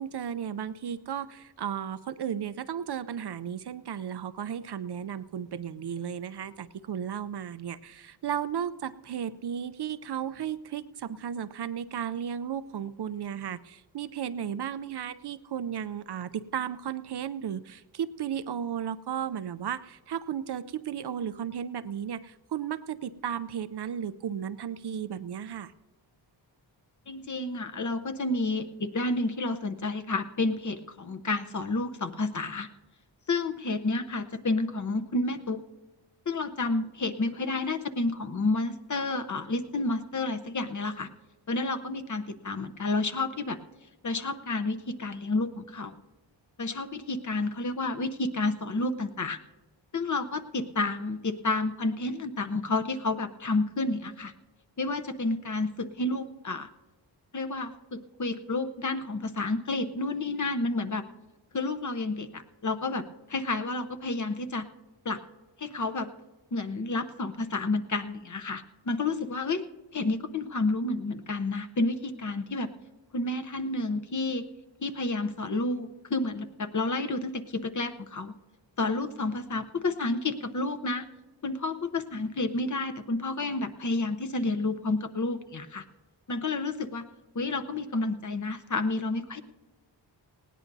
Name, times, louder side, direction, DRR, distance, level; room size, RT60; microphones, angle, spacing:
voice 1, 0.0-25.7, right 8 dB, 60° right, 14 dB, 0.5 m, -34 dB
voice 2, 27.1-32.7 33.3-35.6 36.3-41.1 41.5-43.6 44.0-45.9 46.6-49.4 49.9-54.3 54.8-56.7 57.3-61.0 61.5-63.0 63.3-64.6 65.0-65.2 65.6-66.1 66.5-69.6 69.9-72.7 73.1-74.4 74.8-78.3 78.8-81.1 81.4-85.8 86.3-87.0 87.3-89.4, left 2 dB, 40° left, 8 dB, 0.8 m, -30 dB
19.5 x 17.0 x 2.7 m, 1.2 s
wide cardioid pair, 80°, 46 cm